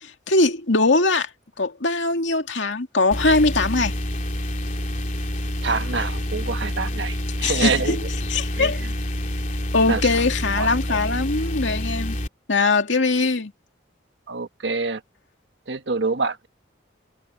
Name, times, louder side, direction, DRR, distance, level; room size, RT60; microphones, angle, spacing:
voice 1, 0.0-1.3 1.6-3.9 7.4-8.0 8.3-8.8 9.7-12.2 12.5-13.5, left 3 dB, 80° left, 2.3 m, -21 dB
sound 1, 3.1-12.3, left 1 dB, 40° left, 3.5 m, -27 dB
voice 2, 5.6-8.0 8.5-8.9 9.9-10.0 10.6-11.0 14.3-15.0 15.7-16.5, right 4 dB, 70° right, 1.3 m, -26 dB
head